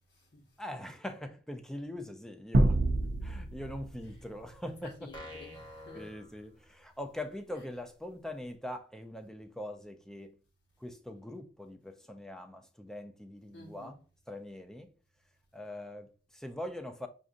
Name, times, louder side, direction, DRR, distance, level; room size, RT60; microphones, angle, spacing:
voice 1, 0.0-0.5 4.6-6.1 13.5-14.0, left 1 dB, 65° left, 1.2 m, -52 dB
voice 2, 0.6-2.8 3.2-5.1 5.9-10.4 10.8-14.0 14.3-14.9 15.5-17.1, left 1 dB, 5° left, 0.4 m, -42 dB
sound 1, 2.5-5.1, right 1 dB, 65° right, 0.5 m, -29 dB
sound 2, 5.1-7.1, left 2 dB, 25° left, 0.9 m, -48 dB
5.9 x 2.5 x 2.5 m
head